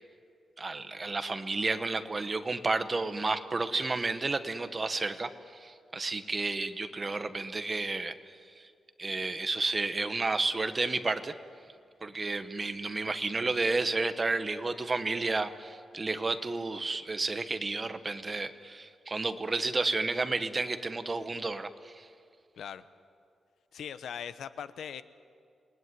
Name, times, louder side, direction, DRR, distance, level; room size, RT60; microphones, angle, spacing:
voice 1, 0.6-5.3 5.6-8.2 8.6-8.7 9.0-11.3 12.0-22.1, right 3 dB, 25° right, 10 dB, 1.2 m, -31 dB
voice 2, 23.7-25.0, left 8 dB, 85° left, 13 dB, 1.0 m, -40 dB
28.5 x 20.5 x 9.7 m, 2.3 s
wide cardioid pair, 165°, 0 cm